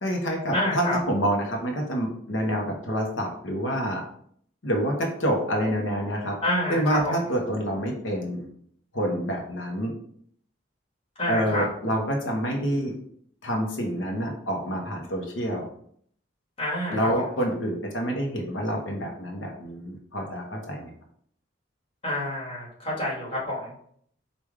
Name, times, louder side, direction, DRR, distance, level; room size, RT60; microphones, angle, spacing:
voice 1, 0.0-4.0 4.6-6.3 6.7-8.4 8.9-9.9 11.3-12.9 13.4-15.7 16.9-20.9, equal, 80° left, 1 dB, 1.0 m, -27 dB
voice 2, 0.5-1.0 6.4-7.1 11.2-11.7 16.6-17.3 22.0-23.8, left 1 dB, 30° left, -6 dB, 1.7 m, -28 dB
4.8 x 2.6 x 3.5 m, 0.64 s
head